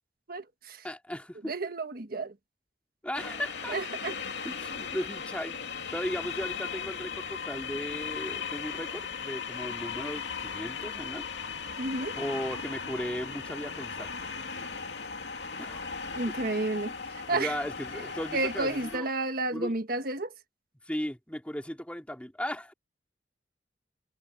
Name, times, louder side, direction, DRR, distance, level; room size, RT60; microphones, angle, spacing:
voice 1, 0.3-0.9 1.5-2.3 3.7-4.1 11.8-12.1 16.1-17.5 18.3-20.3, right 2 dB, 55° right, 1.4 m, -31 dB
voice 2, 0.8-1.5 3.0-3.8 4.4-5.6 5.9-11.3 12.1-14.1 15.6-15.8 17.3-19.1 19.5-19.8 20.8-22.7, equal, 10° left, 2.4 m, -36 dB
sound 1, 3.1-19.0, left 6 dB, 80° left, 2.6 m, -37 dB
head